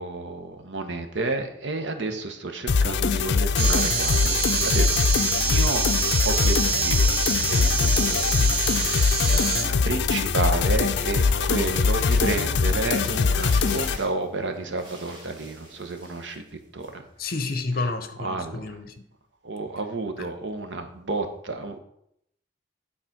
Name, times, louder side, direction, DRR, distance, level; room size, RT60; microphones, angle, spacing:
voice 1, 0.0-5.8 6.2-7.0 7.5-8.2 8.6-16.4 16.7-16.9 18.2-18.5 19.4-21.8, right 3 dB, 85° right, 7 dB, 1.1 m, -31 dB
sound 1, 2.7-14.0, left 5 dB, 75° left, 0.4 m, -22 dB
sound 2, 3.6-9.6, right 5 dB, 50° right, 2.0 m, -26 dB
sound 3, 4.4-5.4 6.1-6.2 6.5-16.5 16.8-17.2, equal, 25° right, 2.4 m, -41 dB
voice 2, 8.4-8.8 17.2-18.9 20.2-20.3, left 3 dB, 50° left, 9 dB, 0.8 m, -31 dB
8.7 x 4.2 x 5.9 m, 0.75 s
head